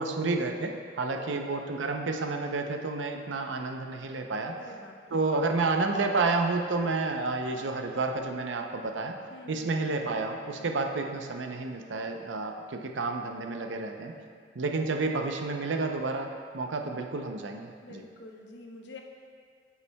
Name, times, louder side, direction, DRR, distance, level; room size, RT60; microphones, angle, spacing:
voice 1, 0.0-4.6 5.1-9.2 9.5-14.1 14.6-18.0, right 3 dB, 75° right, 4 dB, 0.6 m, -30 dB
voice 2, 1.0-1.7 4.6-5.2 9.3-9.8 17.8-19.0, left 2 dB, 65° left, 1 dB, 0.8 m, -47 dB
9.0 x 6.9 x 2.2 m, 2.1 s
head